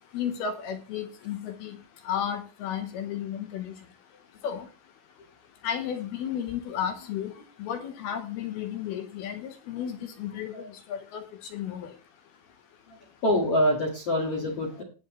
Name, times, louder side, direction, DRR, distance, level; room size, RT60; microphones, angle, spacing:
voice 1, 0.1-1.8 2.1-3.7 4.4-4.7 5.6-7.3 7.6-10.6 10.9-11.9, left 9 dB, 75° left, 7 dB, 2.4 m, -33 dB
voice 2, 12.9-14.8, equal, 55° left, -2 dB, 1.6 m, -26 dB
18.0 x 7.1 x 3.1 m, 0.35 s
omnidirectional pair, 5.4 m